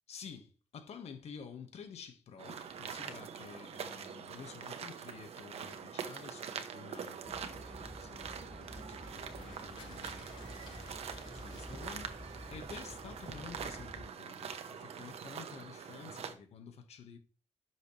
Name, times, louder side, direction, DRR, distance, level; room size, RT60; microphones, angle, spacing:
voice 1, 0.1-12.2 12.5-17.2, left 6 dB, 75° left, 1.7 m, -51 dB
sound 1, 2.4-16.3, right 7 dB, 70° right, 1.1 m, -44 dB
sound 2, 7.2-14.1, left 1 dB, 5° left, 0.4 m, -50 dB
sound 3, 8.5-14.6, left 4 dB, 55° left, 4.6 m, -59 dB
11.0 x 6.4 x 3.4 m
wide cardioid pair, 145°, 11 cm